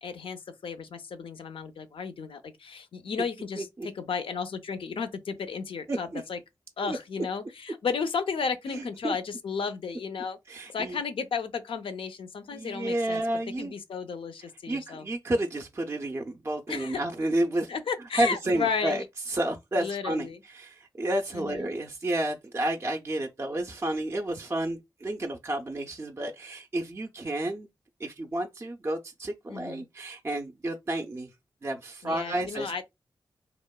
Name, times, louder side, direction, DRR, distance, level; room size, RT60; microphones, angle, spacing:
voice 1, 0.0-6.4 6.8-10.4 10.7-13.2 13.6-15.1 16.7-17.0 17.7-19.0 19.8-20.4 21.3-21.7 29.5-29.9 32.0-32.9, left 5 dB, 75° left, 0.4 m, -33 dB
voice 2, 3.6-3.9 5.9-6.2 6.8-7.0 8.7-9.2 10.5-11.0 12.5-13.7 14.7-17.7 18.2-27.7 28.0-31.3 31.6-32.7, right 1 dB, 30° right, 0.3 m, -31 dB
2.9 x 2.0 x 2.2 m
cardioid pair, 55°, 9 cm